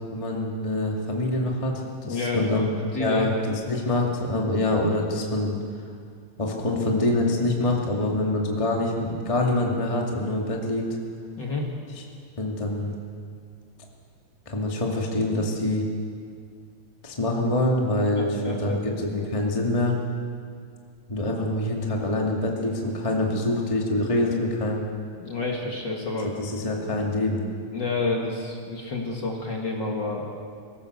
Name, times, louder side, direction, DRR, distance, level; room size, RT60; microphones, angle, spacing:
voice 1, 0.1-2.7 3.0-5.5 6.4-10.8 11.9-12.0 12.4-12.9 14.4-15.8 17.0-19.9 21.1-24.8 26.4-27.4, left 1 dB, 15° left, -1 dB, 1.2 m, -25 dB
voice 2, 2.0-3.6 11.4-11.7 18.2-18.8 25.2-26.3 27.7-30.3, left 3 dB, 35° left, -1 dB, 2.1 m, -29 dB
23.5 x 16.5 x 6.7 m, 2.2 s
omnidirectional pair, 4.2 m